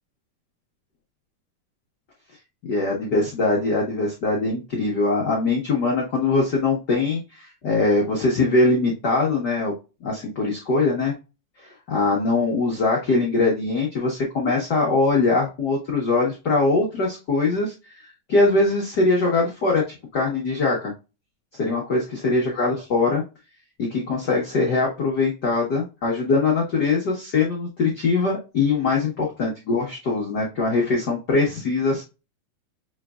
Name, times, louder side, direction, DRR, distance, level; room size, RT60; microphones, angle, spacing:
voice 1, 2.7-9.7 10.0-11.1 11.6-17.7 18.3-20.9 21.6-23.2 23.9-32.0, left 3 dB, 70° left, -3 dB, 1.0 m, -22 dB
6.6 x 3.2 x 2.3 m, 0.29 s
omnidirectional pair, 3.6 m